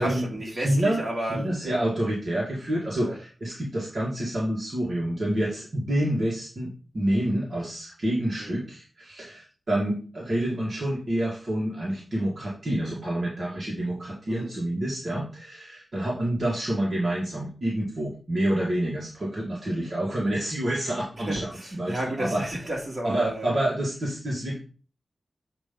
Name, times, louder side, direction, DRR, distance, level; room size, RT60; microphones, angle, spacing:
voice 1, 0.0-1.8 3.0-3.2 8.4-8.5 14.3-14.5 21.3-23.5, right 1 dB, 30° right, -3 dB, 2.6 m, -32 dB
voice 2, 0.6-1.0 1.3-6.7 6.9-22.4 23.0-24.6, right 1 dB, 50° right, -5 dB, 1.8 m, -28 dB
7.5 x 3.0 x 5.1 m, 0.38 s
wide cardioid pair, 120°, 0 cm